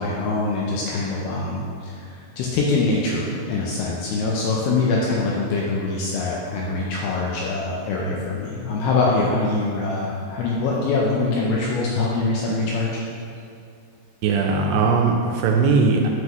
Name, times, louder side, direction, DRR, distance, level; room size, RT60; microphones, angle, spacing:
voice 1, 0.0-12.9, left 3 dB, 80° left, -4 dB, 2.3 m, -24 dB
voice 2, 14.2-16.1, right 4 dB, 85° right, 1 dB, 2.5 m, -19 dB
7.8 x 5.4 x 3.0 m, 2.4 s
omnidirectional pair, 5.1 m